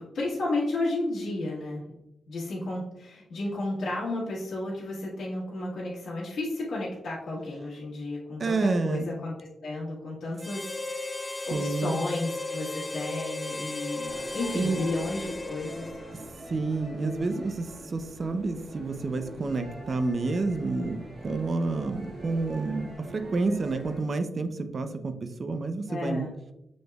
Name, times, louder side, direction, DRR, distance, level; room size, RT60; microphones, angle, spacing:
voice 1, 0.0-1.9 2.3-9.3 9.6-11.1 11.4-15.9 25.9-26.3, left 2 dB, 75° left, -7 dB, 1.4 m, -32 dB
voice 2, 8.4-9.0 11.5-12.0 14.5-14.8 16.1-16.2 16.5-25.1 25.4-26.3, right 3 dB, 50° right, 8 dB, 0.5 m, -29 dB
Harmonica, 10.4-16.4, left 2 dB, 25° left, 0.3 m, -36 dB
sound 1, 14.0-24.0, right 1 dB, 80° right, 1.6 m, -43 dB
6.3 x 3.3 x 2.3 m, 0.88 s
cardioid pair, 70°, 0 cm